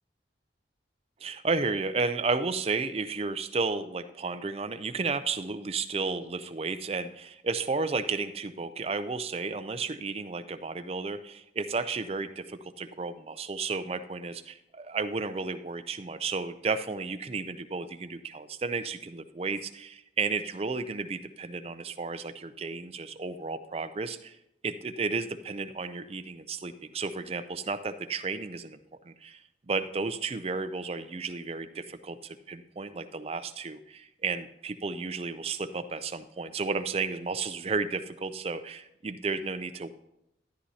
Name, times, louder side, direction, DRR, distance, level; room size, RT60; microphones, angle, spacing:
voice 1, 1.2-24.4 24.6-28.8 29.1-29.4 29.7-39.9, right 4 dB, 35° right, 11 dB, 0.4 m, -33 dB
13.0 x 11.0 x 2.8 m, 0.84 s
head